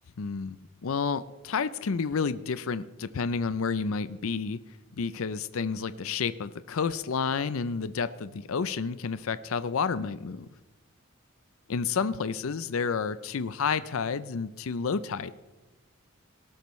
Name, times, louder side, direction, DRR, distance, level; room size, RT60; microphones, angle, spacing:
voice 1, 0.2-4.6 5.0-10.5 11.7-15.3, left 5 dB, 70° left, 14 dB, 0.5 m, -30 dB
18.0 x 12.0 x 3.2 m, 1.2 s
head